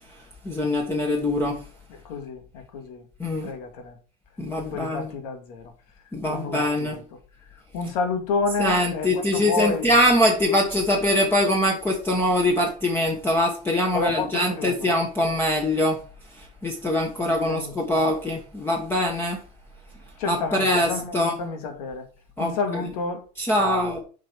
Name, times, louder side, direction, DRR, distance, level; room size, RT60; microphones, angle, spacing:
voice 1, 0.4-1.6 3.2-3.5 4.4-5.1 6.1-7.0 8.6-16.0 16.3-19.4 20.2-21.4 22.4-22.9 23.3-24.0, left 1 dB, 10° left, 1.4 m, -23 dB
voice 2, 1.9-3.0 3.4-4.0 4.6-5.7 6.3-7.0 7.7-9.9 13.9-14.9 17.4-18.0 20.2-22.0 22.4-23.2 23.6-24.0, left 4 dB, 85° left, 2.4 m, -30 dB
7.6 x 4.9 x 5.6 m
cardioid pair, 145°, 19 cm